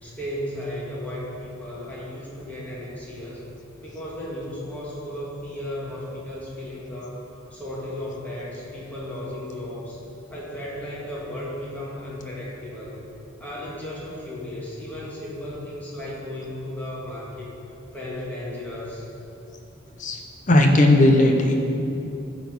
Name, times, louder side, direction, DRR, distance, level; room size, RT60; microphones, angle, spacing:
voice 1, 0.0-3.5 3.8-7.2 7.5-10.0 10.3-13.0 13.4-17.5 17.9-19.1, left 1 dB, 10° left, -7 dB, 1.9 m, -35 dB
voice 2, 20.5-21.5, left 1 dB, 35° left, 3 dB, 0.8 m, -16 dB
11.5 x 4.1 x 7.1 m, 2.9 s
head